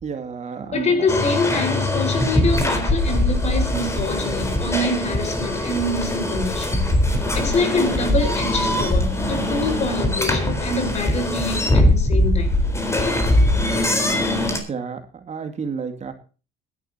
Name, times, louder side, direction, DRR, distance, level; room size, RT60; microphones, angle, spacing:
voice 1, 0.0-0.9 14.7-16.1, right 6 dB, 40° right, 2.3 m, -31 dB
voice 2, 0.7-6.9 7.3-12.6, left 2 dB, 40° left, 4.8 m, -25 dB
sound 1, 1.1-14.6, left 1 dB, 15° left, 4.0 m, -21 dB
22.0 x 11.0 x 2.8 m
cardioid pair, 110°, 17 cm